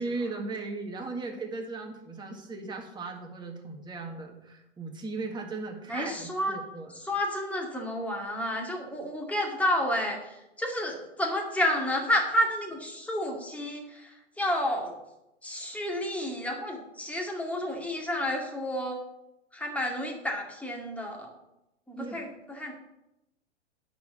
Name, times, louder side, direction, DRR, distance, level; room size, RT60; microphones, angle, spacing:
voice 1, 0.0-7.1 21.9-22.2, right 3 dB, 10° right, 2 dB, 1.8 m, -37 dB
voice 2, 5.9-6.6 7.0-14.9 15.4-19.0 19.5-21.3 21.9-22.7, left 1 dB, 5° left, 0 dB, 2.1 m, -30 dB
10.5 x 4.9 x 7.7 m, 0.90 s
hypercardioid pair, 125°, 36 cm